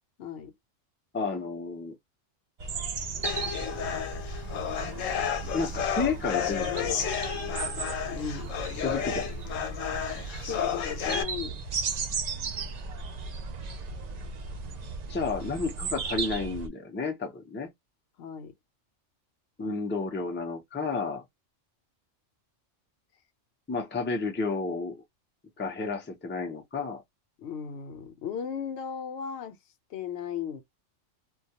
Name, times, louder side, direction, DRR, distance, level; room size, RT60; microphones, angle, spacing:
voice 1, 0.2-0.5 8.1-8.5 10.5-11.6 18.2-18.5 27.4-29.6 29.9-30.6, left 7 dB, 65° left, 0.8 m, -36 dB
voice 2, 1.1-2.0 5.5-7.1 8.8-9.3 15.1-17.7 19.6-21.2 23.7-25.0 25.6-27.0, left 4 dB, 15° left, 0.3 m, -31 dB
sound 1, 2.6-16.7, right 4 dB, 75° right, 0.3 m, -36 dB
sound 2, 3.2-11.2, left 8 dB, 85° left, 1.0 m, -32 dB
2.2 x 2.2 x 2.7 m
omnidirectional pair, 1.3 m